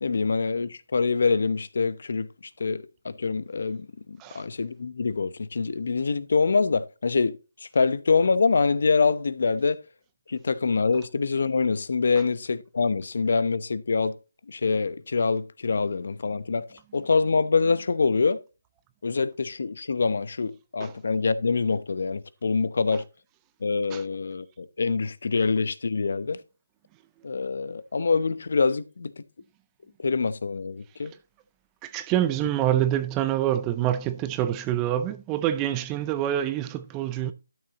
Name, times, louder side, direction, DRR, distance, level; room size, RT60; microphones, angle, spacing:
voice 1, 0.0-2.3 2.6-9.8 10.3-14.1 14.5-18.4 19.0-23.0 23.6-26.4 27.2-29.1 30.0-31.1, left 4 dB, 55° left, 0.8 m, -25 dB
voice 2, 31.8-37.3, right 12 dB, 10° right, 0.4 m, -26 dB
12.5 x 7.0 x 2.9 m
figure-of-eight pair, 170°, 0 cm